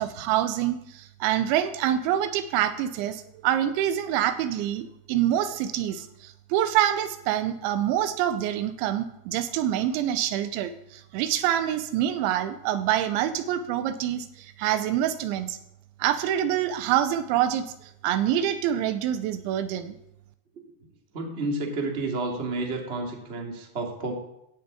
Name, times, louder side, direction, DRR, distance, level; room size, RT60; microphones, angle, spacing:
voice 1, 0.0-14.3 14.6-15.6 16.0-17.7 18.0-20.0, right 11 dB, 85° right, 10 dB, 3.1 m, -26 dB
voice 2, 21.1-24.1, right 2 dB, 30° right, 0 dB, 1.1 m, -30 dB
12.0 x 6.7 x 8.6 m, 0.80 s
omnidirectional pair, 5.3 m